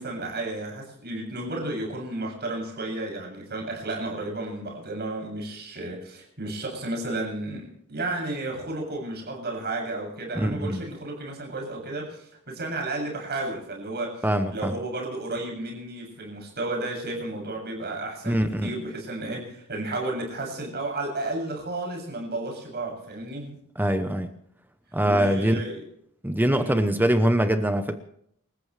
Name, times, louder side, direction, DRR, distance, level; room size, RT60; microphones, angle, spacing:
voice 1, 0.0-23.6 25.0-25.8 26.5-26.8, right 2 dB, 50° right, 1 dB, 7.4 m, -33 dB
voice 2, 10.3-10.8 14.2-14.7 18.3-18.7 23.8-24.3 24.9-25.6 26.2-28.0, right 1 dB, 10° right, 8 dB, 0.9 m, -23 dB
28.5 x 14.5 x 3.3 m, 0.69 s
head